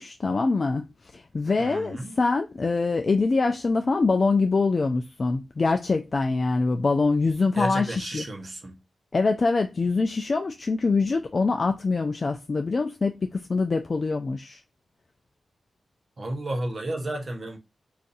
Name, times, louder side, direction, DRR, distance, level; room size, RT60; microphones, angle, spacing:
voice 1, 0.0-8.2 9.1-14.6, left 3 dB, 40° left, 0.3 m, -24 dB
voice 2, 1.6-2.1 7.5-8.8 16.2-17.6, right 1 dB, 40° right, 0.8 m, -32 dB
2.6 x 2.4 x 3.9 m
wide cardioid pair, 100°, 0 cm